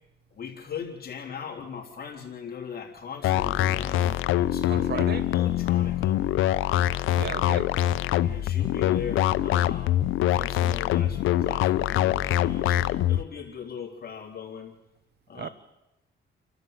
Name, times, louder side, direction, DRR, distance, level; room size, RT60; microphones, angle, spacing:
voice 1, 0.3-6.2 8.2-14.7 15.3-15.5, left 7 dB, 50° left, 3.5 m, -39 dB
sound 1, 3.2-13.2, left 13 dB, 85° left, 0.8 m, -24 dB
voice 2, 4.7-5.2 7.1-7.7 15.3-15.5, right 7 dB, 55° right, 1.4 m, -34 dB
30.0 x 12.0 x 8.0 m
cardioid pair, 90°, 20 cm